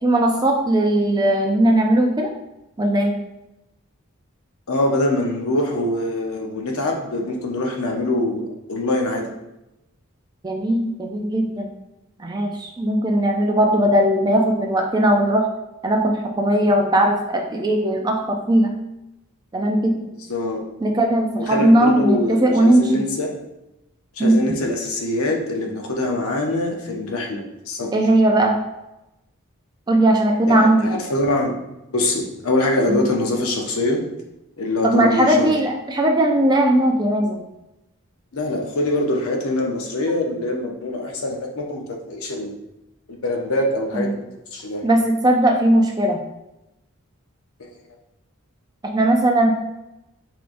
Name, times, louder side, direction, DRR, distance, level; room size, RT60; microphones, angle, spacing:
voice 1, 0.0-2.3 2.8-3.2 10.4-11.7 12.2-15.5 15.8-18.8 19.5-20.1 20.8-23.0 24.2-24.5 27.9-28.6 29.9-30.9 32.9-33.0 34.8-37.4 43.9-44.2 44.8-46.2 48.8-49.5, right 1 dB, 20° right, 2 dB, 0.3 m, -18 dB
voice 2, 4.7-9.3 20.3-20.6 21.4-23.3 24.2-28.0 30.5-31.5 31.9-34.0 34.6-35.5 38.3-42.6 43.1-44.3 44.5-44.9, left 1 dB, 70° left, 1 dB, 0.8 m, -24 dB
4.6 x 3.6 x 2.5 m, 0.92 s
head